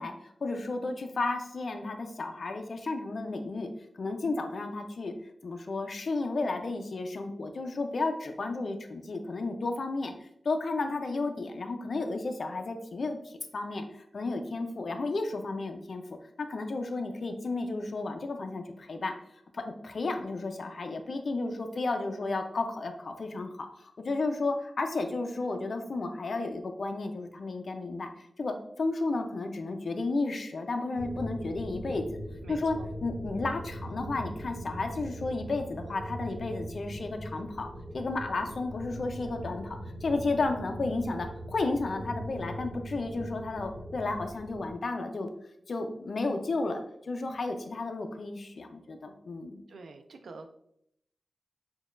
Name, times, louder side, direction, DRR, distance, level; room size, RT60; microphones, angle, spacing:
voice 1, 0.0-5.1 5.4-16.0 16.4-19.1 19.5-32.2 32.5-32.8 33.0-37.7 37.9-45.3 45.7-49.6, left 3 dB, 50° left, 5 dB, 0.4 m, -33 dB
sound 1, 31.0-44.7, equal, 60° right, 1.2 m, -41 dB
voice 2, 32.4-32.9 49.7-50.5, right 3 dB, 80° right, 6 dB, 0.4 m, -46 dB
6.2 x 2.2 x 2.4 m, 0.74 s
wide cardioid pair, 165°, 0 cm